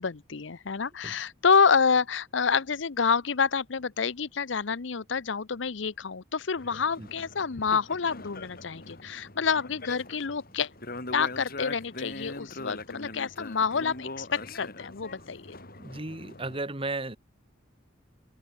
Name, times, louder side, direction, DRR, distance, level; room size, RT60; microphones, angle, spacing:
voice 1, 0.0-10.7 11.1-15.6, left 5 dB, 65° left, 0.7 m, -28 dB
sound 1, 6.6-16.6, left 2 dB, 50° left, 7.6 m, -42 dB
voice 2, 15.8-17.2, right 2 dB, 30° right, 1.8 m, -34 dB
head